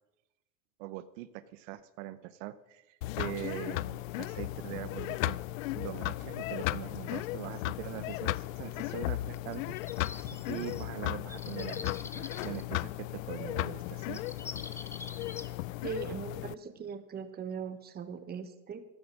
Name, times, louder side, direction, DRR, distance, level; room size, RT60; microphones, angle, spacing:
voice 1, 0.8-5.4 5.7-10.1 10.5-14.2, right 14 dB, 65° right, 13 dB, 0.8 m, -42 dB
sound 1, 3.0-16.5, left 17 dB, 80° left, 0.5 m, -36 dB
sound 2, 9.4-10.9 11.3-12.6 13.8-13.9 14.1-15.5, left 3 dB, 5° left, 0.5 m, -45 dB
voice 2, 15.8-18.9, right 6 dB, 25° right, 10 dB, 1.2 m, -40 dB
14.5 x 11.0 x 6.2 m, 0.95 s
supercardioid pair, 130°, 39 cm